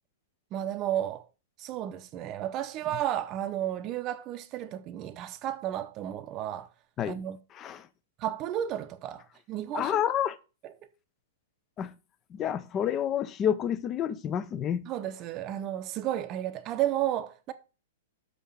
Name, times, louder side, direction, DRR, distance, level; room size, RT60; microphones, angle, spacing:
voice 1, 0.5-1.3 1.6-6.7 7.1-7.4 8.2-9.2 9.5-10.0 10.6-10.9 14.9-17.5, right 12 dB, 30° right, 0.7 m, -32 dB
voice 2, 7.6-7.9 9.7-10.4 11.8-11.9 12.3-14.9, left 9 dB, 25° left, 0.6 m, -29 dB
6.4 x 5.4 x 6.9 m
figure-of-eight pair, 105°, 0 cm